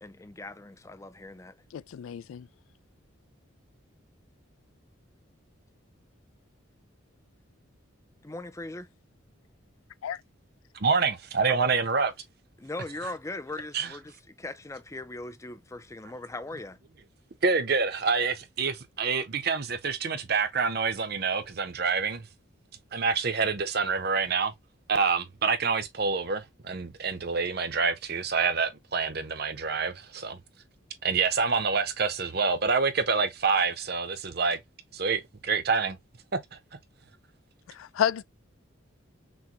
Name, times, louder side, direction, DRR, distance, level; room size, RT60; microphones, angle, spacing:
voice 1, 0.0-1.5 8.2-8.9 11.5-11.7 12.6-16.8, left 2 dB, 15° left, 0.4 m, -39 dB
voice 2, 1.7-2.5 10.0-10.2 37.7-38.2, left 9 dB, 80° left, 0.3 m, -30 dB
voice 3, 10.7-12.1 13.0-13.1 13.7-14.0 17.4-22.3 22.9-24.5 24.9-30.4 31.0-34.6 34.9-36.0 36.5-36.6, right 5 dB, 50° right, 0.8 m, -27 dB
6.2 x 2.2 x 2.9 m
head